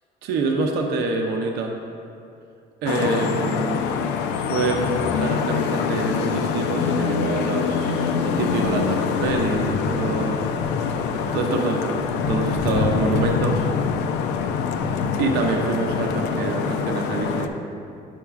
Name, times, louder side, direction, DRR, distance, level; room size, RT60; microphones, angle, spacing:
voice 1, 0.2-1.7 2.8-3.9 4.4-10.4 10.7-13.7 14.9-17.5, right 3 dB, 80° right, 1 dB, 0.6 m, -26 dB
Vehicle horn car horn honking / Traffic noise roadway noise, 2.9-17.5, left 6 dB, 90° left, 0.4 m, -24 dB
8.9 x 5.8 x 2.4 m, 2.5 s
cardioid pair, 110°, 17 cm